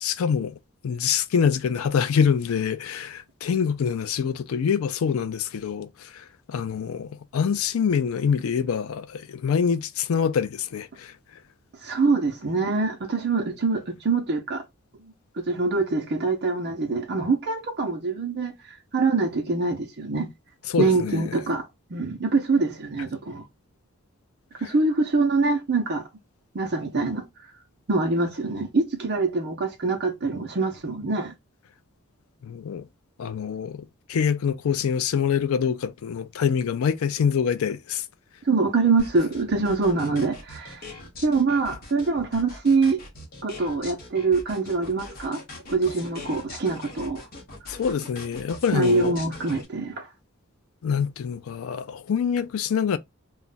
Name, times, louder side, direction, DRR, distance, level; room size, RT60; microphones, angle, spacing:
voice 1, 0.0-0.6 0.8-11.1 20.7-21.3 32.4-32.9 33.2-38.0 47.7-49.1 50.8-53.0, left 7 dB, 85° left, 0.4 m, -25 dB
voice 2, 11.8-14.6 15.5-20.3 20.8-23.5 24.6-26.0 26.5-27.5 27.9-31.3 38.4-40.9 41.2-43.0 43.4-45.4 45.7-47.3 48.7-50.1, right 3 dB, 55° right, 0.6 m, -24 dB
sound 1, 39.0-49.6, left 2 dB, 45° left, 1.0 m, -42 dB
2.3 x 2.1 x 3.8 m
head